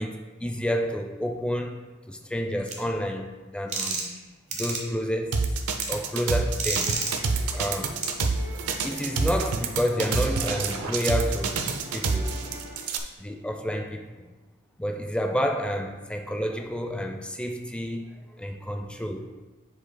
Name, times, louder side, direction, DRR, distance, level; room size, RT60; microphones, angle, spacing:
voice 1, 0.0-1.8 2.1-4.1 4.5-5.5 5.9-6.9 7.5-7.9 8.8-12.4 13.2-14.3 14.8-19.3, equal, 5° left, 0.4 m, -30 dB
sound 1, 2.7-2.8 3.7-4.2 4.5-4.8 5.8-5.9 6.6-7.1 8.0-8.1, right 4 dB, 35° right, 1.0 m, -28 dB
sound 2, 5.3-13.0, right 4 dB, 90° right, 0.6 m, -27 dB
sound 3, 6.8-12.7, right 1 dB, 15° right, 1.2 m, -44 dB
9.4 x 5.0 x 2.2 m
head